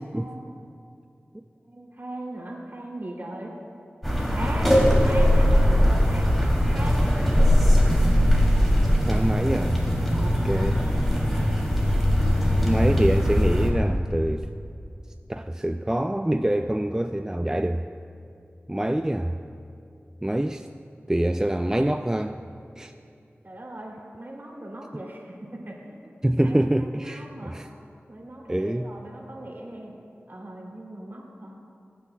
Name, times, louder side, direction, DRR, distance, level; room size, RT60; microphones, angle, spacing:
voice 1, 0.1-0.6 1.7-3.5 4.3-6.3 6.7-7.6 9.9-10.9 23.4-26.0 26.4-27.6 28.1-29.9 30.3-31.5, right 1 dB, 50° right, -3 dB, 2.9 m, -39 dB
sound 1, 4.0-13.7, equal, ahead, 2.9 m, -20 dB
voice 2, 9.1-9.8 10.2-10.8 12.5-14.5 15.3-17.8 18.7-19.4 20.2-20.7 21.1-22.4 22.8-22.9 26.2-27.7 28.5-28.9, right 1 dB, 15° right, 7 dB, 0.3 m, -25 dB
23.0 x 9.6 x 2.3 m, 2.6 s
wide cardioid pair, 50°, 4 cm